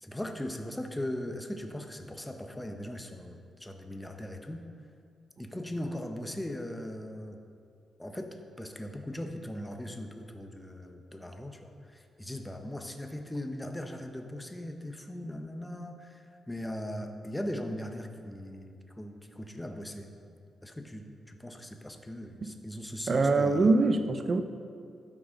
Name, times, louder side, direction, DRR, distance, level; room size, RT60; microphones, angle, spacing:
voice 1, 0.0-4.6 5.4-7.4 8.0-20.1 20.6-23.7, left 1 dB, 10° left, 5 dB, 0.9 m, -39 dB
voice 2, 23.1-24.4, right 3 dB, 40° right, 9 dB, 0.6 m, -24 dB
12.5 x 6.1 x 5.2 m, 2.4 s
cardioid pair, 95°, 0 cm